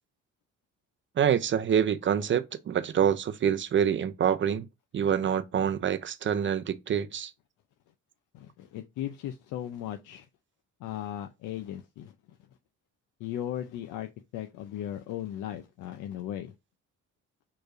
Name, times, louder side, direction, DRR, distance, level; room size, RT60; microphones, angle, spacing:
voice 1, 1.2-4.6 4.9-7.3, right 8 dB, 40° right, 0.5 m, -26 dB
voice 2, 8.3-10.3 10.8-12.4 13.2-16.5, left 11 dB, 85° left, 0.5 m, -37 dB
4.6 x 3.1 x 2.5 m
cardioid pair, 90°, 30 cm